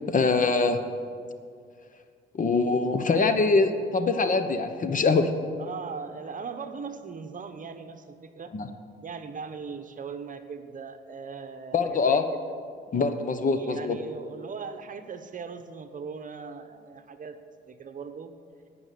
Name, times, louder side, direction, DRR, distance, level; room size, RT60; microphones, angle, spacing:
voice 1, 0.1-0.8 2.3-5.3 8.5-8.7 11.7-12.2 12.9-14.0, left 4 dB, 40° left, 9 dB, 1.1 m, -23 dB
voice 2, 5.6-8.5 9.0-12.5 13.5-17.4 17.7-18.3, right 5 dB, 40° right, 8 dB, 1.0 m, -39 dB
17.5 x 6.1 x 8.4 m, 2.2 s
cardioid pair, 90°, 20 cm